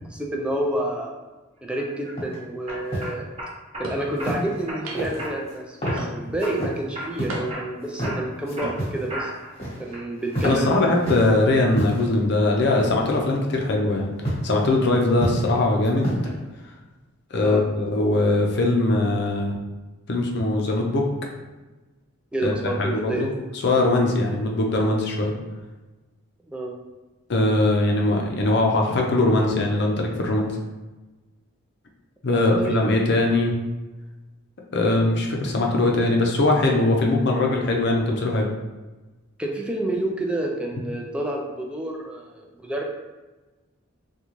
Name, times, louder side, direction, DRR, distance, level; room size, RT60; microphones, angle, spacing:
voice 1, 0.1-1.1 1.6-3.3 3.8-9.3 9.8-11.2 17.4-17.6 22.3-23.3 26.5-26.7 32.3-32.8 39.4-42.9, right 1 dB, 5° right, 0 dB, 0.4 m, -29 dB
sound 1, 1.8-2.1 2.7-3.9 4.2-4.8 5.2-5.5 5.8-6.6 6.9-7.2 7.5-9.5 9.9-10.4, right 1 dB, 30° right, 0.7 m, -35 dB
sound 2, 2.2-2.4 2.7-3.1 4.2-4.6 4.9-5.5 5.8-6.0 6.4-6.8 7.2-7.4 7.8-8.1 8.5-9.1 9.3-9.9 10.2-11.3 11.7-12.1 12.8-13.2 14.2-14.5 14.9-15.5 15.8-16.3, equal, 30° left, 1.1 m, -29 dB
sound 3, 3.8-4.1 4.8-5.3 6.0-6.5 7.3-7.8 8.5-8.8, right 1 dB, 80° right, 0.6 m, -34 dB
voice 2, 10.4-16.1 17.3-19.5 20.1-21.1 22.4-23.3 23.6-25.3 27.3-30.5 32.2-33.5 34.7-38.5, left 2 dB, 55° left, 1 dB, 0.5 m, -21 dB
3.7 x 2.3 x 3.0 m, 1.2 s
head